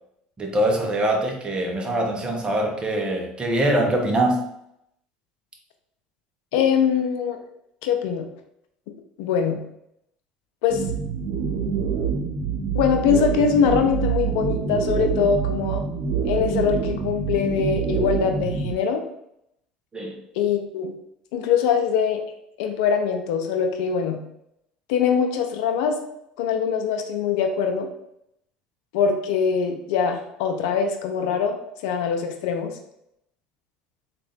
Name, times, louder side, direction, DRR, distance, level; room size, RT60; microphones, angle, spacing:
voice 1, 0.4-4.4 19.9-20.2, right 1 dB, 25° right, 1 dB, 0.9 m, -23 dB
voice 2, 6.5-7.4 7.8-8.3 9.2-9.6 10.6-10.8 12.7-15.8 16.2-19.0 20.3-20.9 21.3-22.2 22.6-24.2 24.9-26.0 26.4-27.9 28.9-31.6 31.8-32.7, left 6 dB, 75° left, 5 dB, 0.6 m, -22 dB
sound 1, 10.7-18.7, right 6 dB, 65° right, 0.8 m, -26 dB
3.6 x 2.5 x 3.5 m, 0.78 s
hypercardioid pair, 85°, 4 cm